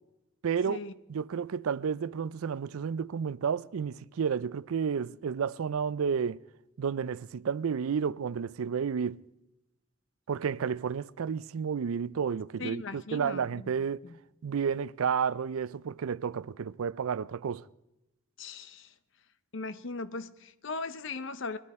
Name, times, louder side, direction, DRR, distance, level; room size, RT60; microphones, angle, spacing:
voice 1, 0.4-0.8 1.1-6.4 6.8-9.2 10.3-14.0 14.4-17.6, right 6 dB, 80° right, 0.4 m, -31 dB
voice 2, 12.6-13.7 14.0-14.2 18.4-18.9 19.5-21.6, left 3 dB, 60° left, 0.7 m, -38 dB
21.0 x 13.5 x 4.3 m
head